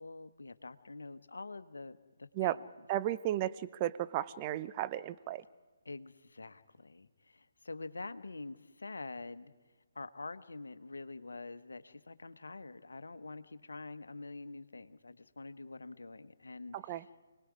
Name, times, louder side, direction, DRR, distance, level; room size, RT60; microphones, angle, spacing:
voice 1, 0.0-2.6 5.8-9.5 9.9-17.1, left 3 dB, 70° left, 12 dB, 1.1 m, -46 dB
voice 2, 2.9-5.4 16.7-17.0, right 13 dB, 25° right, 13 dB, 0.6 m, -34 dB
29.5 x 19.5 x 4.9 m, 1.3 s
figure-of-eight pair, 140°, 0 cm